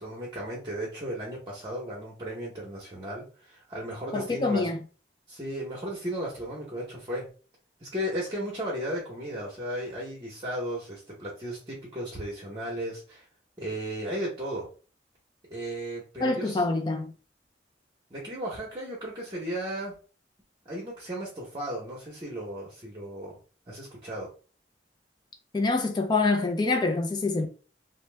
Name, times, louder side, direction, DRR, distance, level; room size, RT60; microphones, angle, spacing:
voice 1, 0.0-4.7 5.3-7.3 7.8-13.2 13.6-14.7 15.5-16.6 18.1-19.9 20.6-23.4 23.7-24.3, right 1 dB, 25° right, 0.8 m, -35 dB
voice 2, 4.1-4.8 16.2-17.1 25.5-27.5, left 3 dB, 25° left, 0.3 m, -26 dB
2.8 x 2.0 x 3.2 m
head